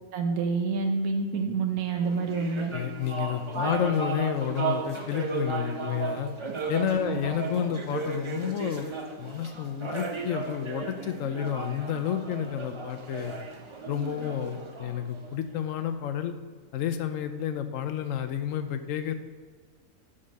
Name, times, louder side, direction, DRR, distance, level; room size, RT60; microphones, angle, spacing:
voice 1, 0.1-2.7 3.5-3.7 7.1-7.2, right 4 dB, 90° right, 4 dB, 1.3 m, -28 dB
sound 1, 2.0-15.7, right 4 dB, 35° right, 0.4 m, -35 dB
voice 2, 2.7-6.3 6.7-8.9 9.2-13.3 13.9-16.3 16.7-19.1, left 9 dB, 70° left, 8 dB, 0.9 m, -30 dB
5.6 x 4.8 x 6.5 m, 1.5 s
omnidirectional pair, 1.5 m